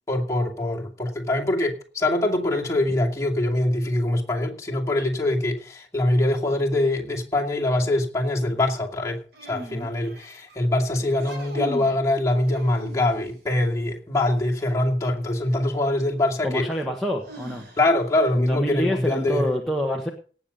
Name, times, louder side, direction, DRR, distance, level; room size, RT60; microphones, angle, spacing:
voice 1, 0.1-16.7 17.8-19.5, left 1 dB, 15° left, 2.4 m, -23 dB
sound 1, 9.3-10.5 11.1-12.0 12.5-13.4 15.3-15.4 17.2-18.1, equal, 60° right, 3.6 m, -39 dB
voice 2, 16.4-17.6 18.3-20.1, equal, ahead, 1.3 m, -26 dB
18.0 x 7.0 x 5.3 m
head